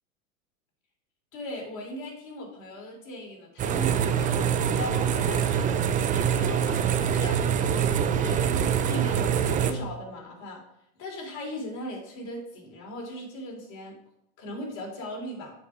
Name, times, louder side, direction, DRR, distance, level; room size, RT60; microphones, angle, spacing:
voice 1, 1.3-6.8 7.1-9.3 9.6-10.6 11.0-14.0 14.4-15.5, left 1 dB, 40° left, 0 dB, 3.2 m, -38 dB
sound 1, 3.6-9.7, right 8 dB, 20° right, 0.5 m, -24 dB
7.6 x 5.4 x 5.0 m, 0.77 s
hypercardioid pair, 110°, 43 cm